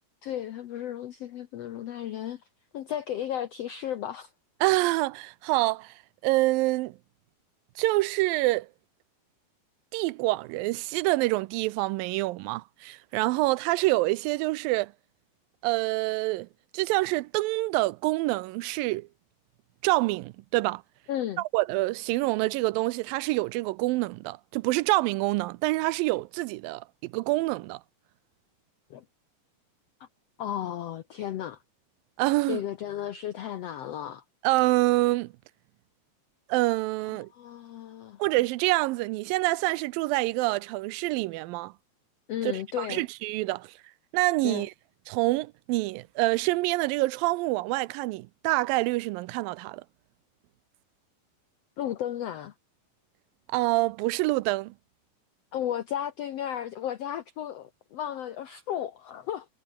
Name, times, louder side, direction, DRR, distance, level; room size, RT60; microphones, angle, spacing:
voice 1, 0.2-2.4 2.7-4.3 21.1-21.4 28.9-29.0 30.0-30.1 30.4-31.6 32.5-34.2 37.3-38.2 42.3-43.0 44.4-44.7 51.8-52.5 55.5-59.5, left 11 dB, 80° left, 1.4 m, -34 dB
voice 2, 4.6-5.9 6.2-7.0 7.8-8.7 9.9-14.9 15.6-16.5 16.7-19.1 19.8-20.8 21.5-27.8 32.2-32.6 34.4-35.3 36.5-37.3 38.2-41.7 42.4-43.7 44.1-44.7 45.1-49.8 53.5-54.7, right 20 dB, 80° right, 2.3 m, -26 dB
omnidirectional pair, 4.1 m